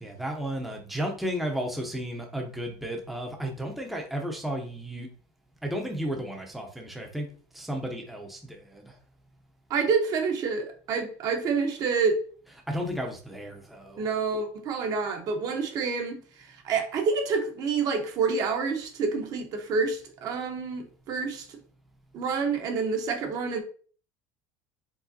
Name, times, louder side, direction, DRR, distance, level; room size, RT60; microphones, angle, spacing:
voice 1, 0.0-5.1 5.6-7.3 7.5-8.9 12.7-14.1, equal, ahead, 0.6 m, -33 dB
voice 2, 9.7-12.2 14.0-21.6 22.1-23.6, right 5 dB, 45° right, 0.9 m, -28 dB
4.7 x 3.7 x 2.7 m
cardioid pair, 145°, 8 cm